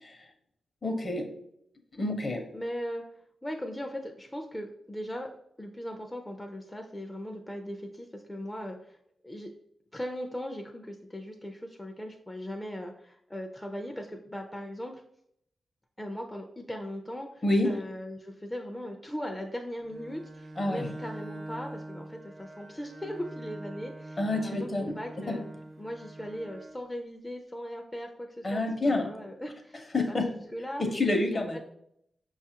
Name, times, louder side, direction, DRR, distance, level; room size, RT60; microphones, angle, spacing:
voice 1, 0.8-1.3 1.9-2.5 17.4-17.8 20.6-20.9 24.2-25.0 25.3-25.4 28.4-29.2 29.9-30.3 30.8-31.6, left 2 dB, 40° left, 5 dB, 0.7 m, -28 dB
voice 2, 2.5-3.0 3.4-5.3 5.6-9.0 9.2-9.5 9.9-15.0 16.0-25.4 25.8-30.8 31.3-31.6, equal, 10° left, 3 dB, 0.4 m, -39 dB
Bowed string instrument, 19.8-26.9, right 1 dB, 55° right, 0.5 m, -44 dB
5.4 x 2.3 x 2.8 m, 0.73 s
cardioid pair, 75°, 0 cm